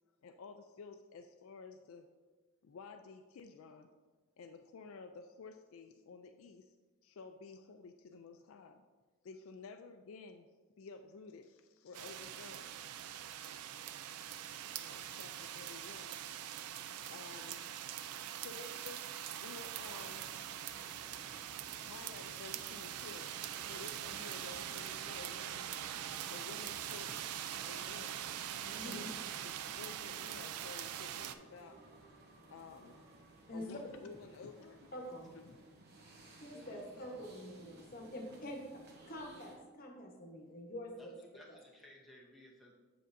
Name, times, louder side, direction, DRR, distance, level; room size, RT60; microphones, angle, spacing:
voice 1, 0.2-2.1 2.6-3.9 4.4-6.7 7.0-8.8 9.2-10.5 10.8-12.7 13.3-13.5 14.2-16.8 17.1-17.7 18.3-20.3 21.7-25.7 26.3-27.1 27.7-28.3 28.8-31.8 32.5-33.2 33.5-34.9 35.4-35.6, left 4 dB, 65° left, 6 dB, 0.3 m, -53 dB
sound 1, 11.9-31.4, right 10 dB, 85° right, 0.4 m, -43 dB
sound 2, 19.7-39.6, right 2 dB, 45° right, 0.9 m, -59 dB
voice 2, 28.6-29.1 33.5-33.7 34.9-35.3 36.4-41.1 41.5-41.6, equal, 40° left, 1 dB, 1.1 m, -46 dB
voice 3, 36.5-37.1 41.0-42.7, left 1 dB, ahead, -3 dB, 0.7 m, -59 dB
7.5 x 6.7 x 2.6 m, 1.3 s
head